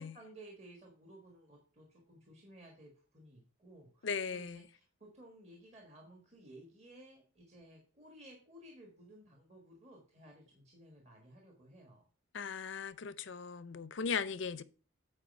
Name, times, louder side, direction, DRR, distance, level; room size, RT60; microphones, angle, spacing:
voice 1, 0.0-12.0, right 1 dB, 30° right, 1.5 m, -56 dB
voice 2, 4.0-4.6 12.3-14.6, left 5 dB, 65° left, 0.6 m, -38 dB
8.8 x 4.8 x 5.3 m
head